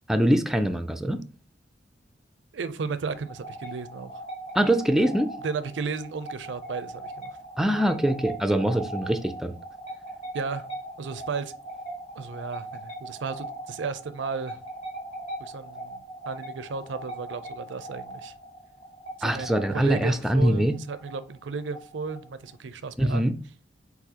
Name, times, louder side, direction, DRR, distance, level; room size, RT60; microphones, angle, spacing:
voice 1, 0.1-1.2 4.5-5.3 7.6-9.5 19.2-20.7 23.0-23.3, right 1 dB, ahead, 0.3 m, -23 dB
voice 2, 2.5-4.2 5.4-7.4 10.3-10.7 11.0-11.5 12.2-14.6 15.4-18.3 19.2-23.3, right 5 dB, 75° right, 0.5 m, -34 dB
sound 1, 3.1-22.5, right 1 dB, 40° left, 1.5 m, -40 dB
4.7 x 4.0 x 2.8 m
head